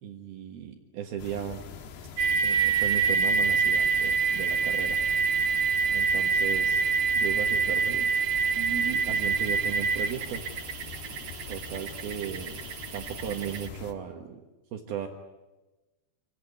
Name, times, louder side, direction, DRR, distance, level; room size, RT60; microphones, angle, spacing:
voice 1, 0.0-1.6 2.4-5.4 5.8-6.8 7.1-8.1 8.6-10.4 11.5-12.6 12.9-14.4 14.7-15.1, right 8 dB, 70° right, 3 dB, 3.3 m, -36 dB
sound 1, 1.2-13.9, left 6 dB, 90° left, 4.0 m, -43 dB
sound 2, 2.2-13.7, right 5 dB, 85° right, 1.3 m, -26 dB
27.0 x 17.0 x 9.5 m, 1.1 s
omnidirectional pair, 4.8 m